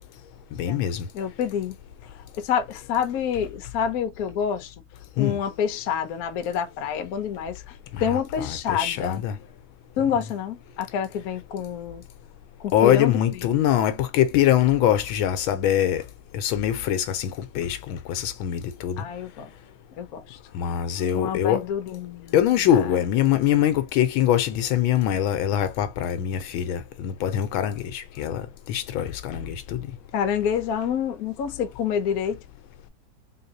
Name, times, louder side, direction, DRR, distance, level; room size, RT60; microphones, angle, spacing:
voice 1, 0.6-1.1 5.2-5.4 7.9-9.4 12.7-16.0 16.3-19.0 20.5-21.6 22.3-29.9, left 10 dB, 90° left, 1.5 m, -23 dB
voice 2, 1.1-1.7 2.4-4.7 5.2-7.6 8.0-9.2 10.0-12.0 12.6-13.2 19.0-19.5 20.0-20.4 21.1-22.3 30.1-32.4, left 8 dB, 60° left, 1.0 m, -27 dB
3.8 x 3.7 x 2.8 m
omnidirectional pair, 2.2 m